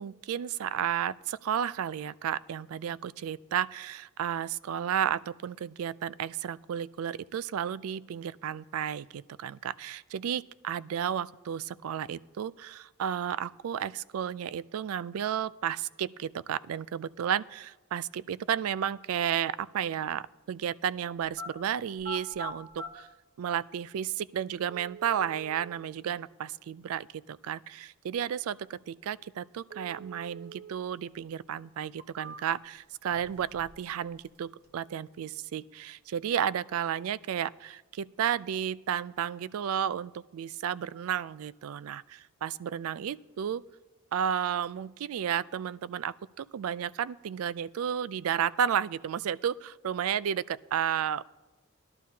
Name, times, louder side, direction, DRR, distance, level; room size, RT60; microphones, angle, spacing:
voice 1, 0.0-23.1 23.4-43.6 44.1-51.4, right 9 dB, 80° right, 19 dB, 0.3 m, -32 dB
sound 1, 21.4-21.5 21.9-22.9 23.9-24.0 24.7-25.7 29.7-30.7 31.1-31.2 31.8-32.7 33.1-33.8 34.1-34.7, right 1 dB, 45° right, 1.0 m, -44 dB
19.0 x 11.5 x 2.8 m, 1.1 s
head